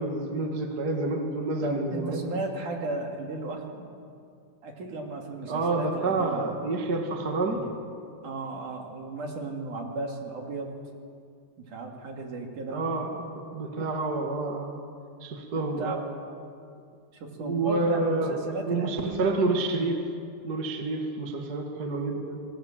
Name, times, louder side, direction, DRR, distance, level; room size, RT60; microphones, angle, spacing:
voice 1, 0.0-2.2 5.5-7.7 12.7-14.7 15.2-16.0 17.4-20.1 20.4-22.4, right 2 dB, 35° right, 3 dB, 1.7 m, -28 dB
voice 2, 1.6-3.9 4.6-6.5 8.2-10.7 11.6-12.9 15.8-16.0 17.1-19.3, right 2 dB, 55° right, 1 dB, 3.9 m, -35 dB
28.0 x 19.0 x 7.7 m, 2.4 s
omnidirectional pair, 4.6 m